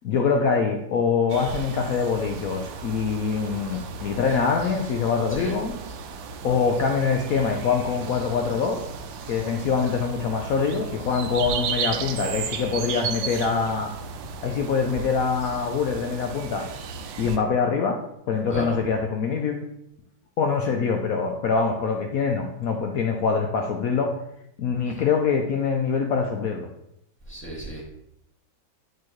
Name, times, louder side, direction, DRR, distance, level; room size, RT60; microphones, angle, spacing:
voice 1, 0.0-5.8 6.4-8.8 9.3-13.9 14.4-16.7 17.2-18.0 18.3-19.6 20.4-24.1 24.6-26.7, left 5 dB, 85° left, 3 dB, 0.7 m, -24 dB
sound 1, 1.3-17.4, right 6 dB, 70° right, 1.2 m, -35 dB
voice 2, 27.3-27.8, equal, 5° left, -5 dB, 1.5 m, -34 dB
8.2 x 4.7 x 3.0 m, 0.78 s
omnidirectional pair, 2.2 m